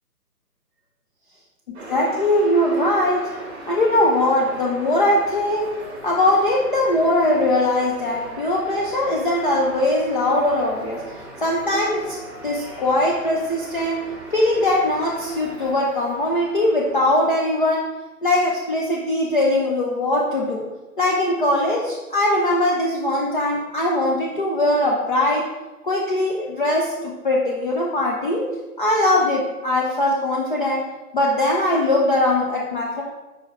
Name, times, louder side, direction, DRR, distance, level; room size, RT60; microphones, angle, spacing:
sound 1, 1.7-17.1, right 1 dB, 10° right, 1.1 m, -39 dB
voice 1, 1.9-3.3 3.7-5.8 6.0-11.0 11.4-12.2 12.4-14.0 14.3-17.9 18.2-20.7 21.0-25.5 25.8-28.5 28.8-30.9 31.1-33.0, left 1 dB, 35° left, -3 dB, 0.6 m, -21 dB
4.9 x 4.9 x 4.4 m, 1.1 s
hypercardioid pair, 155°, 47 cm